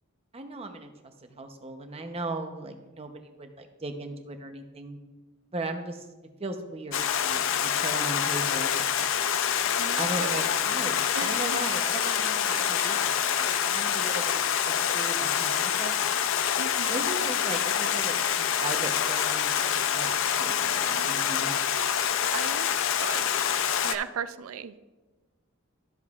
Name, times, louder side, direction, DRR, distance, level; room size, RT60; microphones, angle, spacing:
voice 1, 0.3-0.9 1.2-5.0 5.5-6.1 6.4-8.8 10.0-16.0 16.9-21.5, right 2 dB, 30° right, 6 dB, 0.7 m, -37 dB
Stream, 6.9-24.0, left 8 dB, 65° left, 0.4 m, -26 dB
voice 2, 9.8-10.5 10.8-11.6 12.8-13.0 16.6-17.1 20.8-21.3 22.3-23.2 23.8-24.8, right 7 dB, 85° right, 12 dB, 0.4 m, -37 dB
13.0 x 7.0 x 2.4 m, 1.2 s
head